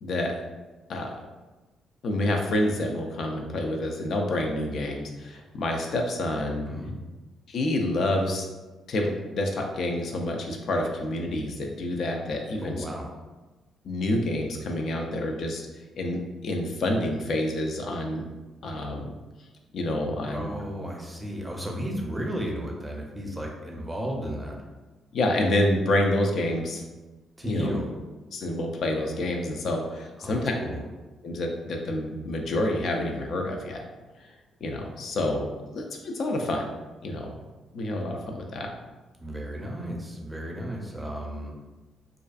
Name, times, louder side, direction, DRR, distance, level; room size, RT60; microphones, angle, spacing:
voice 1, 0.0-0.3 0.9-1.3 2.0-6.7 7.5-8.5 8.9-12.8 13.8-15.6 16.0-18.3 18.6-19.1 19.7-20.5 25.1-26.8 27.4-27.7 28.3-30.5 31.2-33.8 34.2-34.3 34.6-36.7 37.0-37.3 37.7-38.7, left 1 dB, 60° left, 2 dB, 0.3 m, -28 dB
voice 2, 12.6-13.1 20.3-24.7 27.4-27.9 30.2-30.8 39.2-41.6, equal, 10° right, 0 dB, 0.5 m, -33 dB
2.4 x 2.3 x 2.3 m, 1.2 s
cardioid pair, 90°, 0 cm